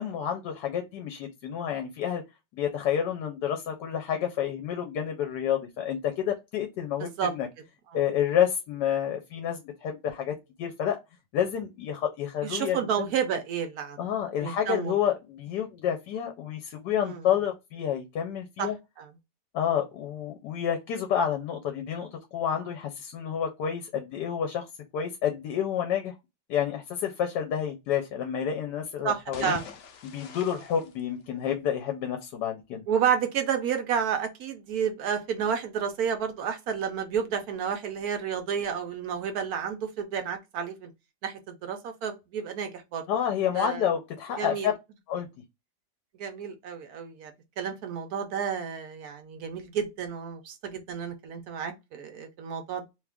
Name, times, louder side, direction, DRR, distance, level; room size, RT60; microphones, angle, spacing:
voice 1, 0.0-2.2 2.5-7.5 7.9-11.0 11.3-13.1 14.0-18.8 19.5-24.7 24.9-26.1 26.5-29.6 30.0-32.8 43.1-44.7 45.1-45.3, left 9 dB, 75° left, 1.2 m, -29 dB
voice 2, 7.0-7.3 12.4-14.0 14.4-14.9 17.0-17.2 18.6-18.7 19.0-19.1 29.0-29.6 32.9-40.9 41.2-43.0 43.5-43.8 44.4-44.7 46.2-47.3 47.6-52.9, right 7 dB, 70° right, 1.0 m, -30 dB
sound 1, 29.2-31.7, left 7 dB, 90° left, 0.6 m, -42 dB
3.0 x 2.4 x 3.4 m
omnidirectional pair, 1.9 m